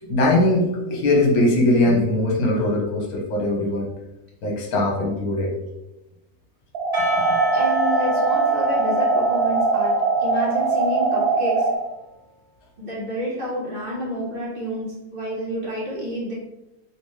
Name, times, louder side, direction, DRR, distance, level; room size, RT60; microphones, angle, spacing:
voice 1, 0.0-3.9 4.4-5.5, left 1 dB, 75° left, -1 dB, 1.3 m, -20 dB
sound 1, 6.7-11.8, right 3 dB, 75° right, 0.5 m, -21 dB
Percussion / Church bell, 6.9-11.7, equal, 20° right, 0.7 m, -33 dB
voice 2, 7.5-11.7 12.8-16.3, equal, 40° right, -6 dB, 1.1 m, -29 dB
3.6 x 2.8 x 3.1 m, 0.95 s
omnidirectional pair, 1.6 m